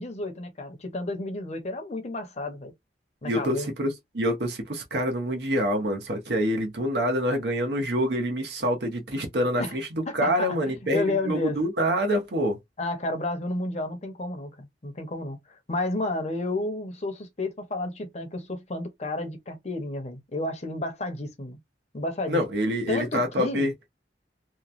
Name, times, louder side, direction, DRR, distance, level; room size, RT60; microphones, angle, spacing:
voice 1, 0.0-2.7 3.2-3.7 9.6-9.7 10.1-11.6 12.8-21.6 21.9-22.4 22.9-23.7, left 2 dB, 35° left, 0.7 m, -31 dB
voice 2, 3.2-12.6 22.3-23.7, equal, 65° right, 0.9 m, -26 dB
3.0 x 2.2 x 2.5 m
head